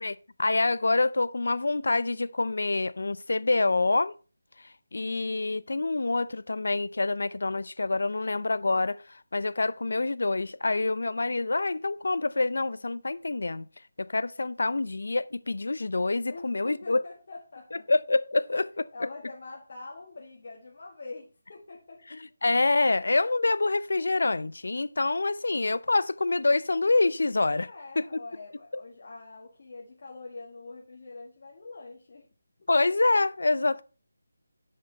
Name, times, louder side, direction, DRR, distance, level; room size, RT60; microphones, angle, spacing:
voice 1, 0.0-4.1 4.6-13.7 14.0-17.0 17.9-18.8 22.1-27.7 28.0-28.1 32.7-33.8, left 3 dB, 70° left, 0.6 m, -26 dB
voice 2, 16.3-17.9 18.9-22.2 27.6-32.3, left 3 dB, 45° left, 1.8 m, -44 dB
7.6 x 6.6 x 4.1 m
figure-of-eight pair, 160°, 0 cm